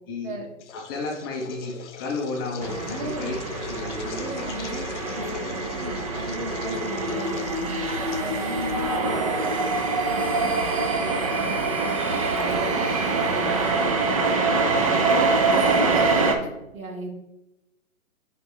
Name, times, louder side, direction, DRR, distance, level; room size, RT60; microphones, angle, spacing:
sound 1, 0.6-9.1, left 7 dB, 60° left, 0.6 m, -39 dB
voice 1, 0.7-4.3 8.9-9.0 9.4-9.5 14.4-14.9, left 3 dB, 15° left, 0 dB, 0.6 m, -33 dB
sound 2, 2.6-16.3, right 3 dB, 25° right, 0.5 m, -24 dB
voice 2, 2.8-3.4 4.1-7.8 8.2-9.8 10.1-13.7 14.1-16.5 16.7-17.1, right 2 dB, 80° right, 0 dB, 1.9 m, -37 dB
Harmonica, 7.9-14.8, right 1 dB, 10° right, 0.9 m, -41 dB
7.8 x 5.1 x 3.1 m, 0.95 s
figure-of-eight pair, 130°, 41 cm